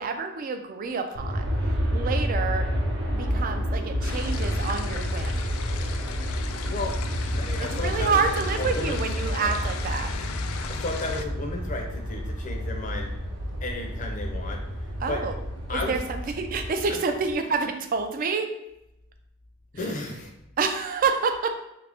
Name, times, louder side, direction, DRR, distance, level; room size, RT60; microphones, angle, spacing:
voice 1, 0.0-1.5 1.9-2.7 3.1-5.4 7.6-10.1 15.0-15.4 15.7-18.5 19.8-20.0 20.6-21.5, right 5 dB, 45° right, 7 dB, 0.3 m, -28 dB
Aircraft, 1.2-17.3, equal, 60° right, 0.7 m, -29 dB
sound 1, 4.0-11.2, left 6 dB, 90° left, 0.3 m, -37 dB
voice 2, 6.6-6.9 7.4-8.2 8.6-9.0 9.3-9.5 10.8-13.1 13.6-14.6 15.1-15.2 15.7-16.0 16.9-17.0 19.7-20.3, left 2 dB, 40° left, 1 dB, 0.5 m, -33 dB
3.2 x 2.5 x 3.4 m, 0.85 s
head